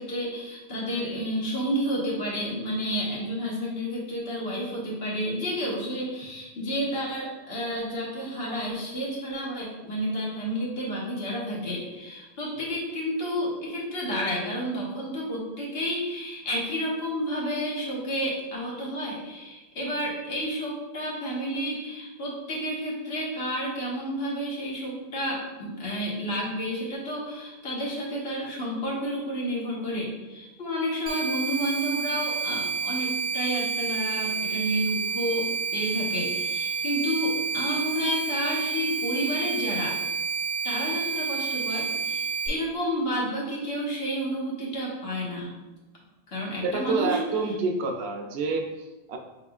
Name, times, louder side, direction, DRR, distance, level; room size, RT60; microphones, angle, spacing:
voice 1, 0.0-39.9 40.6-45.5 46.3-47.2, equal, 70° left, -4 dB, 1.3 m, -30 dB
sound 1, 31.1-42.5, right 5 dB, 45° right, 0.5 m, -29 dB
voice 2, 46.6-49.2, right 4 dB, 85° right, 4 dB, 0.8 m, -28 dB
4.7 x 3.6 x 2.3 m, 1.1 s
omnidirectional pair, 1.0 m